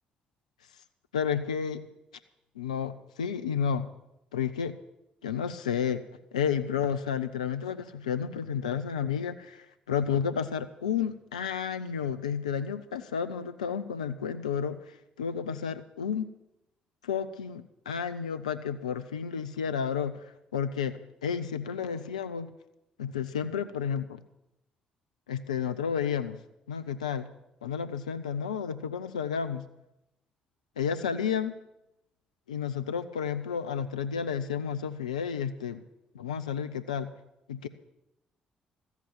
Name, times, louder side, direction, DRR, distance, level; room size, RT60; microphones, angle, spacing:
voice 1, 1.1-1.8 2.6-3.9 4.3-4.8 5.2-6.0 6.3-14.8 15.2-16.3 17.0-20.3 20.5-22.5 23.0-24.2 25.3-26.4 26.7-27.3 27.6-29.6 30.8-31.5 32.5-35.8 36.1-37.1 37.5-37.7, left 7 dB, 90° left, 11 dB, 0.5 m, -31 dB
14.0 x 8.2 x 8.8 m, 0.85 s
hypercardioid pair, 45°, 4 cm